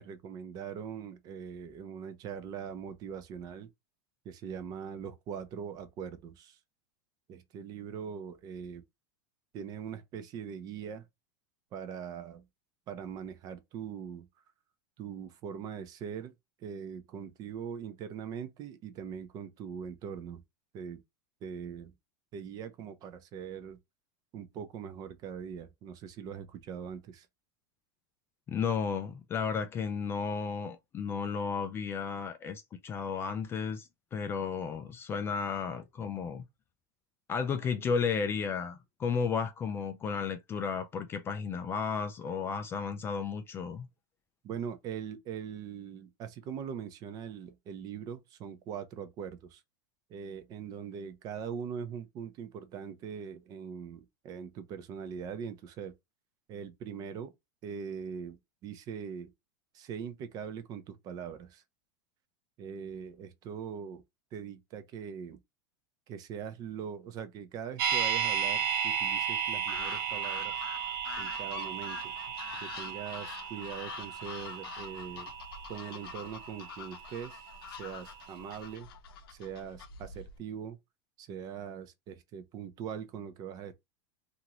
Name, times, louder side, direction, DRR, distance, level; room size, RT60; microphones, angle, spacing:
voice 1, 0.0-3.7 4.2-6.6 7.3-8.8 9.5-11.1 11.7-12.4 12.9-14.3 15.0-16.3 16.6-20.4 20.7-21.0 21.4-21.9 22.3-23.8 24.3-27.3 44.4-49.6 50.1-55.9 56.5-57.3 57.6-59.3 59.7-61.6 62.6-64.0 64.3-65.4 66.1-70.6 71.2-72.1 72.6-75.3 75.7-77.4 77.7-78.9 79.3-80.8 81.2-83.7, right 7 dB, 30° right, 0.5 m, -41 dB
voice 2, 28.5-36.4 37.3-43.9, left 6 dB, 20° left, 0.3 m, -33 dB
sound 1, 67.8-77.8 78.1-78.2, right 8 dB, 75° right, 0.8 m, -34 dB
sound 2, 69.7-80.4, left 7 dB, 80° left, 0.7 m, -45 dB
2.9 x 2.5 x 2.8 m
supercardioid pair, 155°, 12 cm